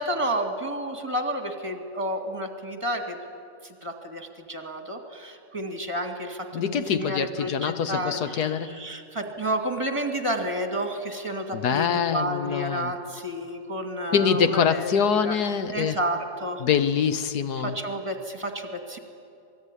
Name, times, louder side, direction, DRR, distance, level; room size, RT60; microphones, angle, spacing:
voice 1, 0.0-3.2 3.6-14.9 15.2-16.6 17.6-19.0, right 1 dB, 15° right, 2.2 m, -31 dB
voice 2, 6.5-8.8 11.5-12.9 14.1-16.0 16.6-17.7, left 7 dB, 60° left, 1.3 m, -24 dB
27.0 x 20.5 x 9.9 m
omnidirectional pair, 2.1 m